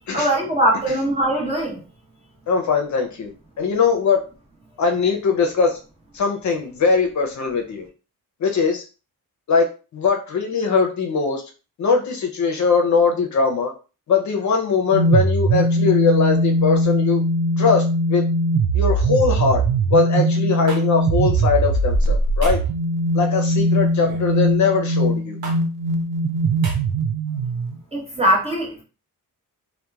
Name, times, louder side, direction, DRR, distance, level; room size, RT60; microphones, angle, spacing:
voice 1, 0.1-1.8 27.9-28.8, right 1 dB, 15° right, -3 dB, 0.9 m, -21 dB
voice 2, 2.5-4.2 4.8-5.8 6.1-7.9 8.4-8.8 9.5-9.7 9.9-11.4 11.8-13.7 14.1-17.2 17.6-18.3 18.7-19.6 19.9-22.6 23.1-25.4, left 5 dB, 55° left, 3 dB, 0.6 m, -20 dB
sound 1, 14.9-27.8, right 1 dB, 70° right, 0.5 m, -20 dB
sound 2, 20.7-20.8 22.4-22.7 24.0-24.3 25.4-25.6 26.6-26.8, right 3 dB, 85° right, 1.0 m, -34 dB
2.9 x 2.1 x 2.3 m, 0.34 s
wide cardioid pair, 135°, 35 cm